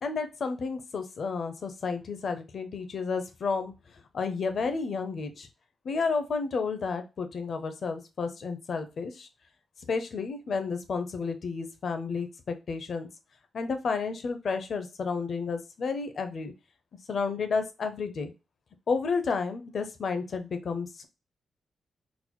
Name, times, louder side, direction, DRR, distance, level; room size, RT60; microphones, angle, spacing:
voice 1, 0.0-3.7 4.1-5.5 5.8-9.3 9.9-13.1 13.5-16.5 17.1-18.3 18.9-21.1, left 4 dB, 55° left, 8 dB, 0.5 m, -31 dB
3.9 x 2.2 x 3.0 m, 0.29 s
wide cardioid pair, 125°, 0 cm